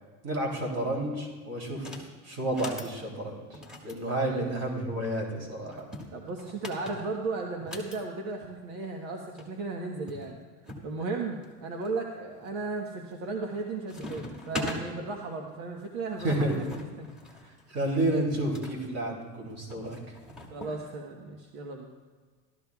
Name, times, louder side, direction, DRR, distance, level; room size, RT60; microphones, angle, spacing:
voice 1, 0.2-2.0 2.2-3.4 3.8-5.9 16.2-16.6 17.7-20.0, right 1 dB, 40° right, 0 dB, 3.1 m, -30 dB
sound 1, 1.7-2.1 2.4-2.9 3.5-4.9 5.7-8.0 9.1-9.2 9.4-9.5 10.1-10.9 11.4-11.9 12.5-12.9 13.2-13.6 13.9-14.8 15.8-18.8 19.7-20.8, left 1 dB, ahead, 1.5 m, -41 dB
voice 2, 4.2-4.5 6.1-10.4 10.8-17.1 17.3-17.6 20.5-21.9, right 3 dB, 70° right, 1 dB, 1.3 m, -35 dB
15.5 x 12.5 x 2.4 m, 1.5 s
cardioid pair, 140°, 37 cm